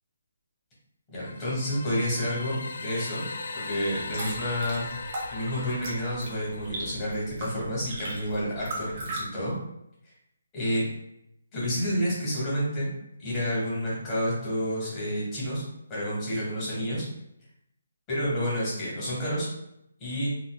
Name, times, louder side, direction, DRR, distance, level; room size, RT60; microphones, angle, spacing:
voice 1, 1.1-3.2 3.5-4.9 5.3-9.5 10.5-10.8 11.5-12.9 13.2-15.6 15.9-17.0 18.1-19.5 20.0-20.3, equal, 15° left, -8 dB, 1.4 m, -29 dB
sound 1, 1.2-7.2, left 4 dB, 55° left, 0.3 m, -39 dB
sound 2, 3.9-9.2, right 2 dB, 30° right, 1.1 m, -38 dB
4.2 x 2.5 x 2.3 m, 0.80 s
hypercardioid pair, 170°, 0 cm